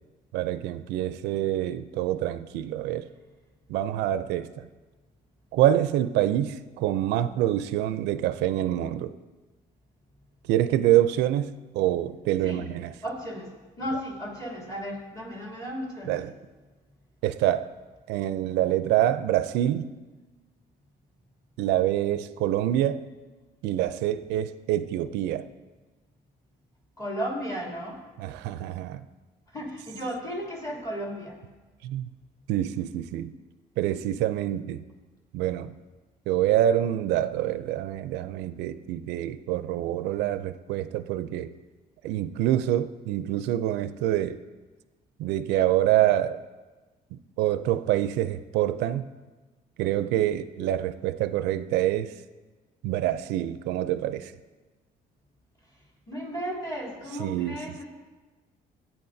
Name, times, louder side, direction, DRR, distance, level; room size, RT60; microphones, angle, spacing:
voice 1, 0.3-3.1 3.7-4.5 5.5-9.1 10.5-12.9 16.1-16.3 17.2-17.7 18.1-19.9 21.6-23.0 23.6-25.5 28.2-29.0 31.8-32.1 32.5-33.3 33.8-34.8 35.3-35.7 36.3-41.5 42.0-44.4 45.2-46.4 47.1-49.1 49.8-52.1 52.8-54.3 57.2-57.6, right 12 dB, 85° right, 13 dB, 0.4 m, -26 dB
voice 2, 13.0-13.5 13.8-16.2 27.0-28.0 29.5-31.4 56.1-57.9, equal, 20° left, -4 dB, 2.8 m, -34 dB
16.5 x 8.8 x 2.7 m, 1.2 s
cardioid pair, 110°, 17 cm